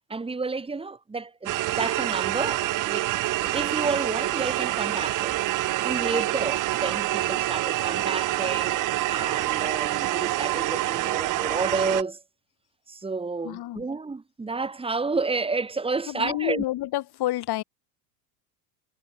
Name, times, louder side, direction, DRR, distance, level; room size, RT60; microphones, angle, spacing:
voice 1, 0.1-3.1 3.4-5.4 5.8-12.2 12.9-16.6, right 4 dB, 10° right, 1.7 m, -30 dB
sound 1, 1.5-12.0, right 17 dB, 40° right, 0.8 m, -26 dB
voice 2, 13.4-13.9 16.1-17.6, left 15 dB, 50° left, 7.8 m, -29 dB
supercardioid pair, 120°, 50 cm